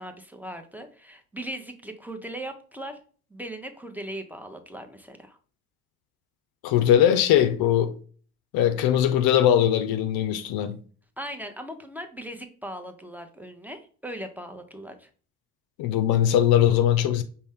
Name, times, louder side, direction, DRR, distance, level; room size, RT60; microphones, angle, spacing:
voice 1, 0.0-3.0 3.3-5.4 11.2-15.1, right 1 dB, 5° right, 0.7 m, -38 dB
voice 2, 6.6-7.9 8.5-10.8 15.8-17.2, left 10 dB, 65° left, 0.5 m, -20 dB
5.2 x 2.2 x 3.5 m
hypercardioid pair, 45°, 40 cm